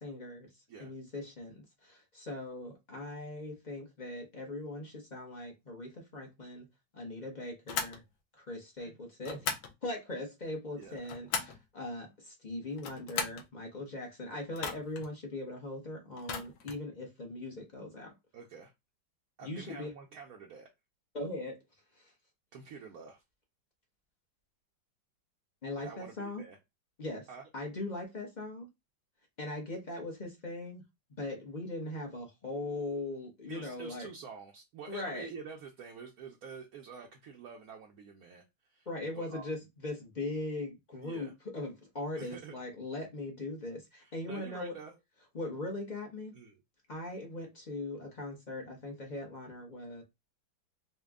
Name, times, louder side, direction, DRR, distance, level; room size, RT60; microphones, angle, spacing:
voice 1, 0.0-0.5 0.8-6.7 6.9-8.0 8.3-9.5 9.8-18.1 19.4-19.9 21.1-21.6 21.9-22.1 25.6-26.4 27.0-27.3 27.5-28.7 29.4-30.8 31.2-34.1 34.9-35.3 38.9-44.7 45.3-46.3 46.9-50.0, left 2 dB, 40° left, 0.6 m, -40 dB
sound 1, 7.7-8.0 9.2-9.7 10.8-11.6 12.7-13.5 14.5-15.1 16.2-16.8, left 6 dB, 75° left, 1.5 m, -37 dB
voice 2, 18.3-18.7 19.4-20.7 22.5-23.2 25.8-26.6 27.3-27.4 33.5-38.9 39.1-39.5 41.0-41.3 42.1-42.6 44.0-44.9 46.3-46.6, right 5 dB, 65° right, 0.9 m, -48 dB
4.3 x 2.2 x 3.5 m
omnidirectional pair, 2.1 m